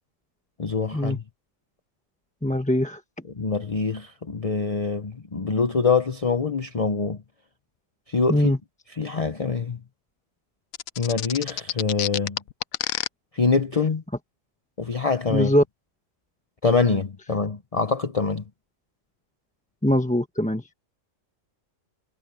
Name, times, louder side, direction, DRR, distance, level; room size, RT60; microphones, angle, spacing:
voice 1, 0.6-1.2 3.3-7.2 8.1-8.5 9.0-9.8 11.0-12.4 13.3-14.0 14.8-15.5 16.6-18.4, left 4 dB, 30° left, 0.9 m, -24 dB
voice 2, 2.4-3.0 8.3-8.6 15.3-15.6 19.8-20.7, left 1 dB, 5° left, 1.0 m, -22 dB
sound 1, 10.7-13.1, left 12 dB, 85° left, 1.1 m, -28 dB
omnidirectional pair, 1.4 m